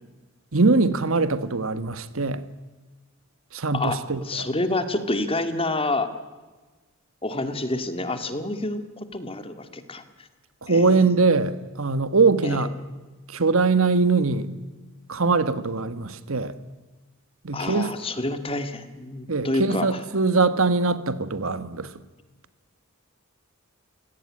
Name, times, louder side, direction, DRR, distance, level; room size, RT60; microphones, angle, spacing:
voice 1, 0.5-2.4 3.5-4.5 10.6-12.7 13.3-14.5 15.1-16.5 17.4-17.9 19.3-21.9, right 3 dB, 70° right, 13 dB, 1.4 m, -22 dB
voice 2, 3.7-6.1 7.2-10.3 10.7-10.8 12.4-12.7 17.5-20.0, left 2 dB, 25° left, 9 dB, 2.0 m, -28 dB
28.5 x 17.5 x 9.8 m, 1.3 s
head